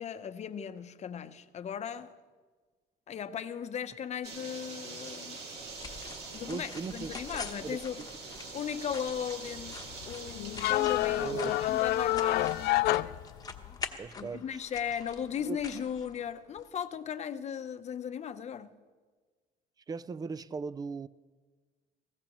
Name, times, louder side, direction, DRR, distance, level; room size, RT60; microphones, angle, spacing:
voice 1, 0.0-2.1 3.1-5.4 6.3-8.0 8.5-13.1 14.2-18.7, left 8 dB, 40° left, 0.8 m, -37 dB
sound 1, 4.2-12.7, right 4 dB, 75° right, 2.3 m, -45 dB
sound 2, 5.4-16.7, left 4 dB, 20° left, 1.1 m, -46 dB
voice 2, 6.5-8.1 11.1-11.6 14.0-14.6 15.5-15.6 19.9-21.1, right 5 dB, 25° right, 0.4 m, -38 dB
sound 3, 9.5-13.9, left 16 dB, 75° left, 0.4 m, -29 dB
20.0 x 16.5 x 3.0 m
cardioid pair, 110°, 17 cm